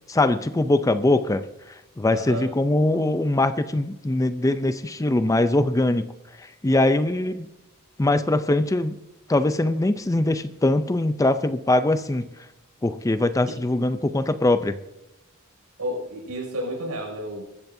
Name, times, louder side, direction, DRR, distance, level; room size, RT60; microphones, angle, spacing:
voice 1, 0.1-1.5 2.0-6.1 6.6-7.5 8.0-9.0 9.3-12.3 12.8-14.8, left 2 dB, 15° left, 11 dB, 0.5 m, -22 dB
voice 2, 2.1-2.5 7.0-7.2 15.8-17.4, equal, 85° right, 0 dB, 6.0 m, -31 dB
23.5 x 14.0 x 2.7 m, 0.92 s
head